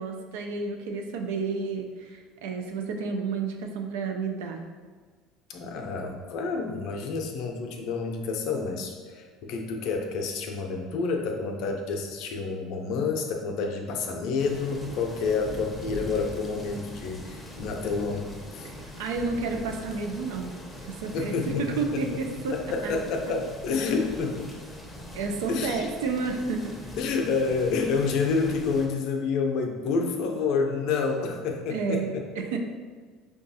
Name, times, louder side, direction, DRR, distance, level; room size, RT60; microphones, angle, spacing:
voice 1, 0.0-4.6 18.6-20.5 20.8-22.6 22.8-22.9 25.1-26.9 31.7-32.6, right 4 dB, 85° right, 4 dB, 0.4 m, -31 dB
voice 2, 5.5-18.7 21.1-22.0 22.5-24.5 25.5-25.9 27.0-32.2, left 4 dB, 65° left, 3 dB, 0.5 m, -29 dB
sound 1, 14.4-28.9, left 1 dB, 10° left, 0.6 m, -42 dB
4.9 x 2.3 x 2.7 m, 1.5 s
supercardioid pair, 95°, 0 cm